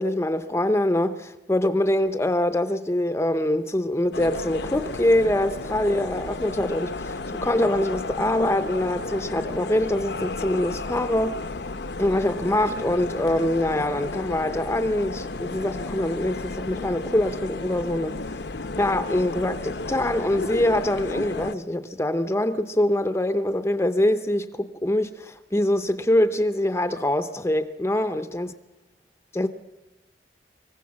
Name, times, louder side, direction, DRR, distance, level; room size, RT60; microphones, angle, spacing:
voice 1, 0.0-11.4 12.0-18.2 18.8-28.5 29.3-29.5, left 1 dB, 15° left, 0.7 m, -24 dB
sound 1, 4.1-21.6, left 3 dB, 70° left, 0.8 m, -33 dB
25.0 x 15.5 x 7.4 m
head